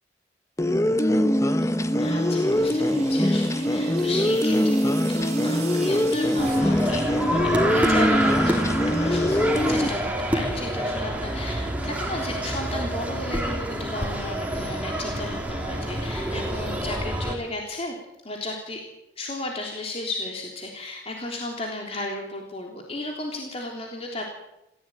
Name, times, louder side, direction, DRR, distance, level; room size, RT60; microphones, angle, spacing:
sound 1, 0.6-9.9, left 1 dB, 15° left, 1.2 m, -22 dB
sound 2, 1.7-7.6, right 7 dB, 35° right, 3.5 m, -42 dB
voice 1, 2.0-17.9 18.2-18.8 19.2-24.2, left 2 dB, 35° left, 0 dB, 3.6 m, -34 dB
sound 3, 6.4-17.3, right 1 dB, 10° right, 3.6 m, -27 dB
29.5 x 16.0 x 9.3 m, 0.90 s
head